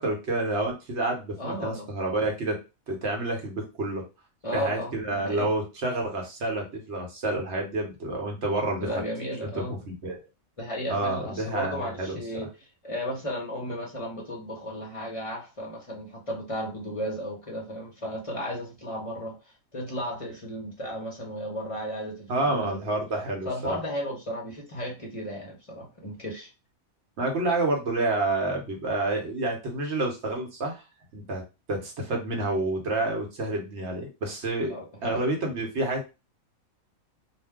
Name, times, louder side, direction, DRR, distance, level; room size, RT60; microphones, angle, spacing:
voice 1, 0.0-2.6 2.9-4.0 4.5-9.0 9.4-10.2 10.9-12.2 22.3-23.8 27.2-30.8 31.1-31.4 31.7-34.7 35.0-36.0, right 2 dB, 55° right, 1 dB, 1.0 m, -29 dB
voice 2, 1.4-1.9 4.4-5.5 8.8-9.8 10.6-22.9 23.4-26.5 34.7-35.2, equal, 30° left, -1 dB, 0.7 m, -34 dB
2.5 x 2.2 x 3.5 m, 0.28 s
omnidirectional pair, 1.5 m